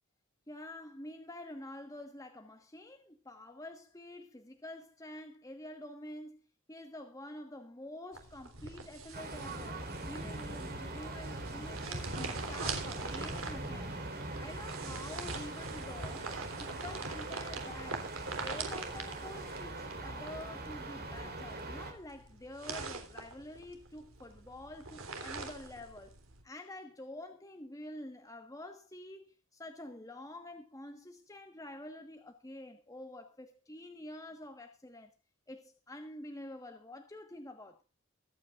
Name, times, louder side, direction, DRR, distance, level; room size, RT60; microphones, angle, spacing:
voice 1, 0.5-9.8 10.1-13.9 14.4-16.3 16.6-18.1 18.4-26.2 26.4-35.1 35.5-37.8, left 1 dB, 15° left, 1.4 m, -48 dB
sound 1, 8.1-26.4, right 4 dB, 90° right, 3.6 m, -43 dB
sound 2, 9.1-21.9, right 2 dB, 50° right, 4.1 m, -42 dB
24.5 x 9.3 x 2.5 m
head